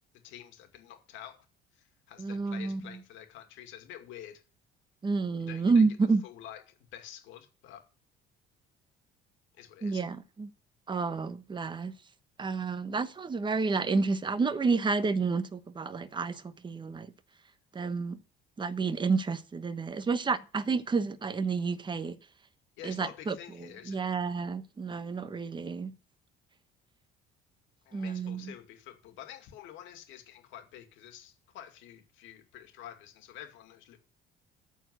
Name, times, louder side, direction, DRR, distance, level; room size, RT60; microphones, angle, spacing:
voice 1, 0.2-1.4 2.1-4.4 5.4-5.8 6.2-7.8 9.6-10.1 22.8-24.3 27.9-34.0, left 11 dB, 75° left, 2.3 m, -48 dB
voice 2, 2.2-2.8 5.0-6.2 9.8-10.5 10.9-11.9 12.4-17.1 17.7-18.2 18.6-22.2 22.8-25.9 27.9-28.5, right 4 dB, 25° right, 1.0 m, -30 dB
13.5 x 4.6 x 8.1 m
cardioid pair, 100°, 20 cm